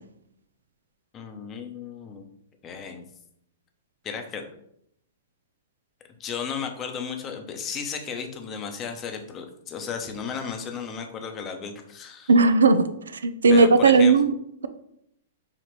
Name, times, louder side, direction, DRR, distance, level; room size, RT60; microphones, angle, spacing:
voice 1, 1.1-2.2 2.6-3.0 4.0-4.5 6.2-12.3 13.5-14.2, left 6 dB, 25° left, 5 dB, 0.7 m, -34 dB
voice 2, 12.3-12.8 13.1-14.3, right 4 dB, 85° right, 11 dB, 0.4 m, -16 dB
5.9 x 2.4 x 3.2 m, 0.73 s
hypercardioid pair, 125°, 0 cm